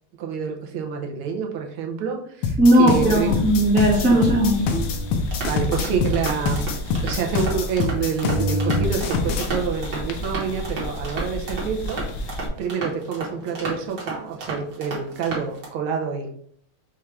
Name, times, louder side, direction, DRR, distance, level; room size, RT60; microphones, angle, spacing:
voice 1, 0.2-3.4 4.1-4.2 5.5-6.7 7.0-16.3, right 6 dB, 75° right, 2 dB, 1.4 m, -28 dB
sound 1, 2.4-9.5, left 5 dB, 85° left, 1.6 m, -25 dB
voice 2, 2.6-4.8, equal, 10° right, -4 dB, 0.5 m, -17 dB
sound 2, 2.9-8.0 8.2-12.5, equal, 70° left, 1.1 m, -30 dB
sound 3, 5.3-15.7, right 3 dB, 55° right, 1.6 m, -34 dB
5.7 x 2.4 x 3.2 m, 0.64 s
omnidirectional pair, 2.4 m